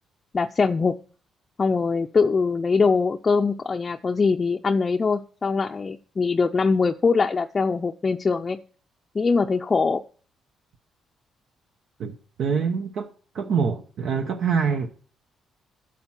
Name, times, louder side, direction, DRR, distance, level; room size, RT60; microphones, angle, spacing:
voice 1, 0.3-1.0 1.6-8.6 9.1-10.0, left 4 dB, 35° left, 0.5 m, -22 dB
voice 2, 12.4-13.1 13.3-14.9, right 6 dB, 70° right, 0.9 m, -25 dB
8.8 x 7.4 x 5.8 m
cardioid pair, 90°, 0 cm